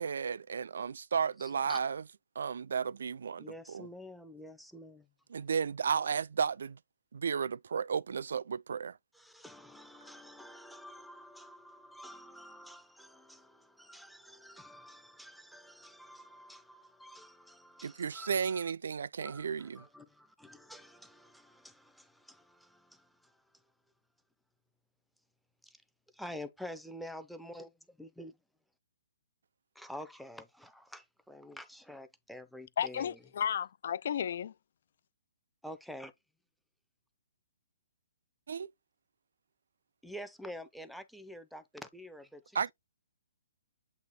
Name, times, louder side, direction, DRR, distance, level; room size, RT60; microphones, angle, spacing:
voice 1, 0.0-2.0 2.4-3.9 5.3-6.8 7.1-9.0 17.8-19.9 38.5-38.7 42.5-42.7, right 6 dB, 75° right, 0.3 m, -33 dB
voice 2, 1.4-1.8 3.4-5.1 9.1-18.6 19.2-23.4 25.6-25.8 26.1-28.3 29.8-33.2 35.6-36.1 40.0-42.6, equal, ahead, 0.6 m, -48 dB
voice 3, 32.8-34.5, left 8 dB, 60° left, 0.4 m, -33 dB
8.2 x 2.9 x 4.1 m
hypercardioid pair, 150°, 0 cm